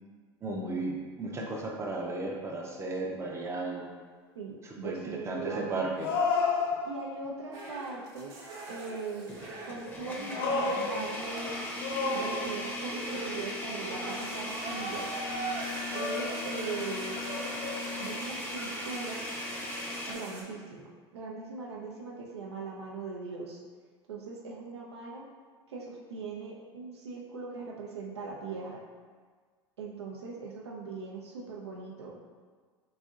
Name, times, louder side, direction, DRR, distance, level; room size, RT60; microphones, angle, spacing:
voice 1, 0.4-3.9 4.6-6.1, right 2 dB, 20° right, -1 dB, 0.5 m, -35 dB
sound 1, 3.5-3.6 6.0-7.3 9.9-11.4 11.8-12.9 15.1-15.4 15.9-16.8 17.2-18.2, left 4 dB, 60° left, 0.4 m, -32 dB
voice 2, 4.3-6.1 6.8-8.4 8.7-9.4 9.7-11.4 12.1-15.1 15.9-17.2 18.0-19.2 20.1-20.9 21.1-23.6 24.1-25.3 25.7-28.8 29.8-32.2, right 4 dB, 80° right, -2 dB, 0.5 m, -40 dB
sound 2, 6.6-6.7 7.2-7.3 9.3-20.1, left 2 dB, 15° left, 0.7 m, -38 dB
sound 3, 7.5-20.4, right 3 dB, 60° right, 1.0 m, -42 dB
4.0 x 2.6 x 2.4 m, 1.5 s
hypercardioid pair, 80°, 14 cm